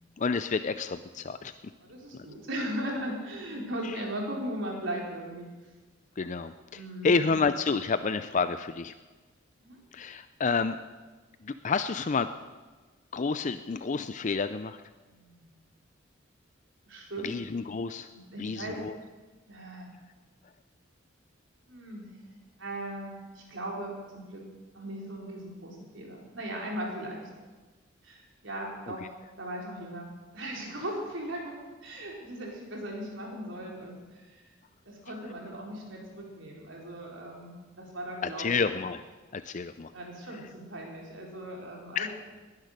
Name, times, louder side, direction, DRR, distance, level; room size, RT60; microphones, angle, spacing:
voice 1, 0.2-1.5 2.1-2.3 3.8-4.0 6.2-8.9 9.9-10.8 11.4-12.3 13.1-14.8 17.2-18.1 18.4-19.0 28.9-29.0 38.2-39.0 39.3-39.9 42.0-42.1, left 4 dB, 40° left, 11 dB, 0.4 m, -29 dB
voice 2, 1.8-5.5 6.7-7.1 9.6-9.8 15.1-15.5 16.8-17.3 18.1-18.8 19.5-19.9 21.7-22.2 22.6-24.4 24.7-27.3 28.0-29.0 29.4-34.4 34.9-38.5 39.9-42.1, right 1 dB, 70° right, -1 dB, 4.4 m, -38 dB
20.0 x 10.5 x 6.6 m, 1.3 s
head